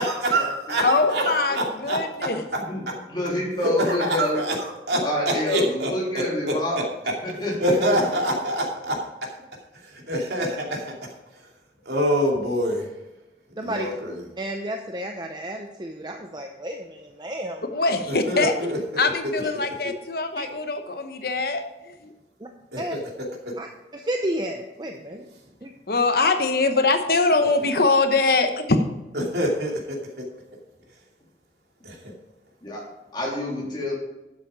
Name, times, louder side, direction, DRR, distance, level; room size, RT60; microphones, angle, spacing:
voice 1, 0.0-2.0 2.5-2.6 3.6-5.0 5.5-5.9 6.5-6.6 7.6-8.9 9.7-10.9 11.3-11.5 11.8-12.9 13.6-14.2 18.1-19.3 22.7-23.5 29.1-30.2 31.8-32.1, right 1 dB, 70° right, 0 dB, 2.6 m, -26 dB
voice 2, 0.8-1.6 1.8-2.4 17.7-18.5 19.0-21.9 25.9-28.6, left 3 dB, 55° left, 7 dB, 0.9 m, -22 dB
voice 3, 3.1-4.4 4.9-6.8 7.2-8.0 32.6-32.8 33.1-33.9, left 1 dB, 25° left, -4 dB, 3.2 m, -27 dB
voice 4, 13.6-13.9 14.4-17.6 18.4-18.5 19.4-19.5 20.4-20.5 22.4-22.5 22.8-22.9 23.6-23.7 23.9-25.3 25.6-25.7, right 1 dB, 25° right, 3 dB, 0.6 m, -31 dB
11.5 x 7.4 x 5.0 m, 1.0 s
head